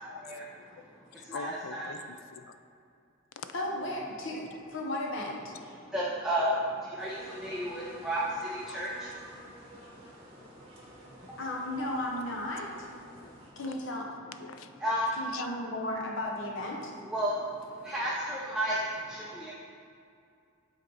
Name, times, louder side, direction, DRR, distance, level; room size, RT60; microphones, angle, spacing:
voice 1, 0.1-0.5 0.8-0.9 1.2-2.5 3.4-3.5 13.1-13.3 14.4-14.8 15.3-15.5, left 6 dB, 85° left, 9 dB, 0.4 m, -43 dB
voice 2, 1.3-1.9 5.9-6.5 6.9-8.2 8.5-9.1 14.8-15.1 17.0-17.3 17.8-18.8 19.1-19.5, right 1 dB, 5° right, -7 dB, 0.6 m, -32 dB
voice 3, 3.5-4.4 4.7-5.5 11.4-12.9 13.6-14.1 15.2-16.9 17.8-17.9, left 1 dB, 65° left, -1 dB, 1.0 m, -35 dB
sound 1, 7.0-13.5, right 1 dB, 30° right, 1.6 m, -52 dB
7.8 x 4.3 x 4.0 m, 2.4 s
head